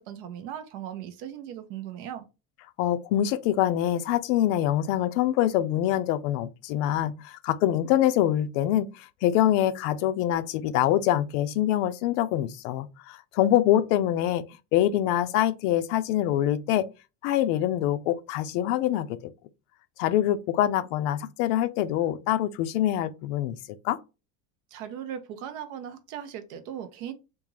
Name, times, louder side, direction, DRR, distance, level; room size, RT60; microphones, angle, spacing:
voice 1, 0.0-2.3 24.7-27.1, right 10 dB, 60° right, 0.7 m, -38 dB
voice 2, 2.8-14.4 14.7-16.9 17.2-19.2 20.0-23.6 23.8-24.0, left 12 dB, 65° left, 0.5 m, -25 dB
3.6 x 2.5 x 3.1 m
cardioid pair, 180°, 40 cm